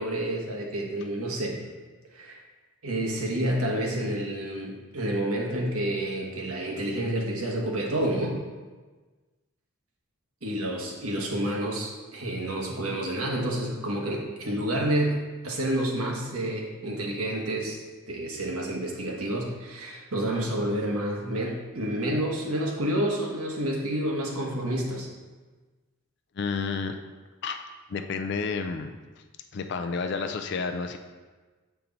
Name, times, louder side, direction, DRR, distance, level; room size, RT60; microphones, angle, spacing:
voice 1, 0.0-1.6 2.1-2.4 2.8-8.4 10.4-17.8 18.1-25.1, right 1 dB, 75° right, -1 dB, 1.2 m, -29 dB
voice 2, 26.4-26.9 27.4-27.6 27.9-28.9 29.5-31.0, left 5 dB, 50° left, 6 dB, 0.4 m, -30 dB
7.0 x 4.5 x 3.9 m, 1.3 s
head